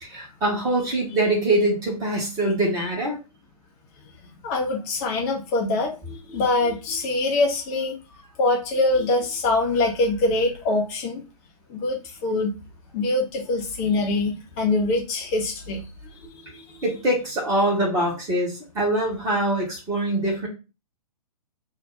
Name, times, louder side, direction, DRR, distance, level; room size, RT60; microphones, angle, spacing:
voice 1, 0.0-3.2 16.8-20.5, right 1 dB, 15° right, -2 dB, 1.2 m, -23 dB
voice 2, 4.4-8.0 8.4-11.2 11.7-12.5 12.9-15.8 16.3-16.8, left 2 dB, 25° left, 0 dB, 0.7 m, -24 dB
2.7 x 2.2 x 3.4 m, 0.29 s
figure-of-eight pair, 120°, 20 cm